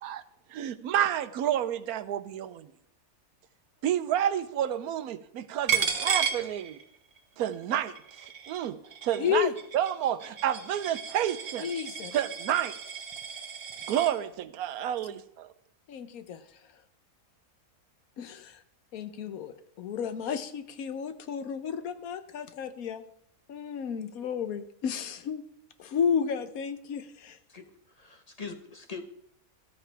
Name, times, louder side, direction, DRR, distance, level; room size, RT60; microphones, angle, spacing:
voice 1, 0.5-2.7 3.8-6.8 7.4-8.0 8.5-11.7 12.1-12.8 13.9-15.5, right 10 dB, 85° right, 14 dB, 1.2 m, -30 dB
Coin (dropping), 5.7-7.2 7.5-14.1, right 7 dB, 45° right, 1.1 m, -34 dB
voice 2, 9.2-9.5 11.6-12.1 15.9-16.4 18.2-18.6 18.9-23.0 23.5-25.4 25.8-27.4, left 7 dB, 80° left, 11 dB, 1.3 m, -32 dB
voice 3, 27.5-29.0, left 4 dB, 30° left, 6 dB, 1.1 m, -42 dB
13.5 x 13.0 x 3.4 m, 0.72 s
omnidirectional pair, 1.5 m